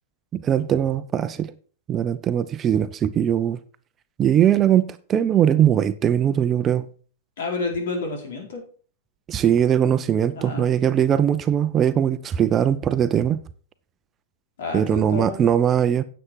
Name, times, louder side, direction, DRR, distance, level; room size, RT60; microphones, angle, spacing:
voice 1, 0.3-1.5 1.9-3.6 4.2-6.8 9.3-13.4 14.7-16.0, right 9 dB, 30° right, 0.7 m, -20 dB
voice 2, 7.4-8.6 10.3-10.7 14.6-15.4, left 3 dB, 65° left, 4.5 m, -29 dB
9.7 x 7.4 x 4.8 m
hypercardioid pair, 105°, 0 cm